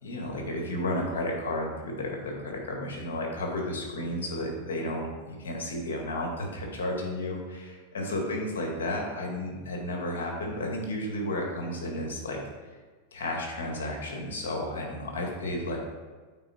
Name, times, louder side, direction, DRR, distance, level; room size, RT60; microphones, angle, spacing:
voice 1, 0.0-12.4 13.1-15.8, left 1 dB, 85° left, 0 dB, 2.1 m, -32 dB
8.6 x 4.4 x 4.5 m, 1.4 s
hypercardioid pair, 110°, 0 cm